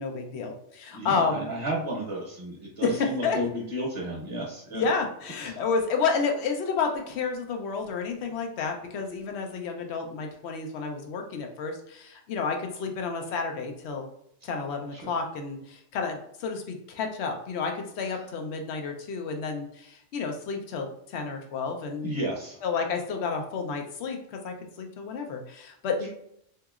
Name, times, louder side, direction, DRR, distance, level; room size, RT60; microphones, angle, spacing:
voice 1, 0.0-1.5 2.8-3.4 4.7-14.1 14.4-22.2 22.6-26.1, left 5 dB, 65° left, 3 dB, 0.9 m, -30 dB
voice 2, 0.9-4.9 5.4-5.6 14.9-15.1 22.0-22.6, right 1 dB, 30° right, -4 dB, 0.8 m, -33 dB
3.9 x 2.8 x 2.3 m, 0.71 s
omnidirectional pair, 1.3 m